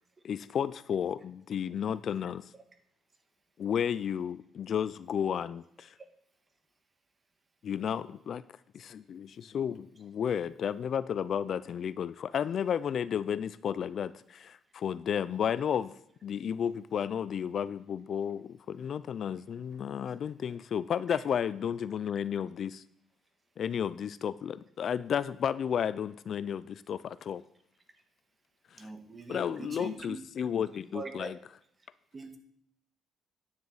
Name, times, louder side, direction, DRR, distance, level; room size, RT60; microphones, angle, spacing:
voice 1, 0.2-2.4 3.6-5.9 7.6-8.4 8.7-15.9 16.2-22.8 23.6-27.4 29.3-31.3, left 8 dB, 50° left, 16 dB, 0.3 m, -32 dB
voice 2, 28.7-30.2 30.9-31.3 32.1-32.4, right 3 dB, 25° right, 7 dB, 1.4 m, -42 dB
9.5 x 9.3 x 4.0 m, 0.70 s
cardioid pair, 110°, 0 cm